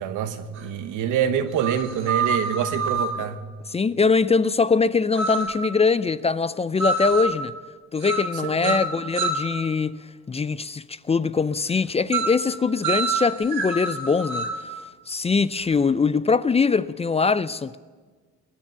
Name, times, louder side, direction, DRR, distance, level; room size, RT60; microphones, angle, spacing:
voice 1, 0.0-3.4 8.6-8.8, right 8 dB, 85° right, 1.1 m, -26 dB
sound 1, 0.6-0.7 1.6-3.2 5.2-5.6 6.8-7.3 8.0-8.4 8.6-9.5 12.1-12.4 12.8-14.6, right 3 dB, 60° right, 2.4 m, -26 dB
voice 2, 3.7-7.5 7.9-10.0 10.3-14.5 15.1-17.8, left 4 dB, 20° left, 0.4 m, -22 dB
21.0 x 7.3 x 8.0 m
cardioid pair, 90°, 30 cm